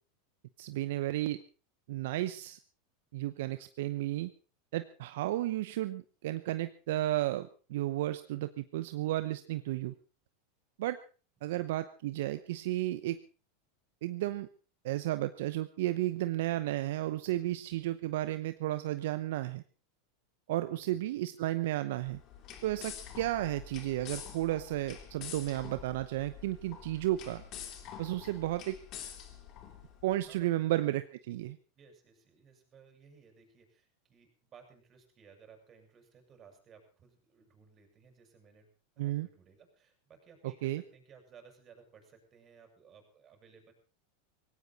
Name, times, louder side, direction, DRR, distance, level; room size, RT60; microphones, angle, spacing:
voice 1, 0.6-1.4 1.9-2.6 3.1-4.3 4.7-9.9 10.8-11.0 11.4-13.2 14.0-14.5 14.8-19.6 20.5-22.2 22.6-27.4 28.0-28.8 30.0-31.6 39.0-39.3 40.4-40.8, right 15 dB, 70° right, 11 dB, 0.8 m, -33 dB
voice 2, 20.7-21.0 30.2-30.5 31.7-38.7 39.0-43.7, right 6 dB, 35° right, 5 dB, 6.4 m, -59 dB
sound 1, 22.0-30.2, left 8 dB, 45° left, 3.3 m, -47 dB
18.0 x 17.0 x 4.2 m, 0.36 s
hypercardioid pair, 105°, 0 cm